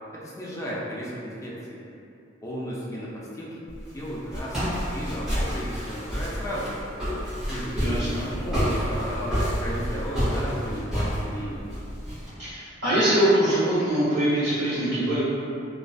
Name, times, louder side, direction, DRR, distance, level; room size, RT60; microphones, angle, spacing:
voice 1, 0.1-1.8 2.4-6.8 7.4-11.7, equal, 15° left, -6 dB, 0.4 m, -34 dB
Walk footsteps, 3.7-12.3, equal, 5° right, 0.8 m, -29 dB
voice 2, 7.7-8.2 12.4-15.2, right 1 dB, 65° right, -16 dB, 1.2 m, -23 dB
2.3 x 2.3 x 2.3 m, 2.7 s
head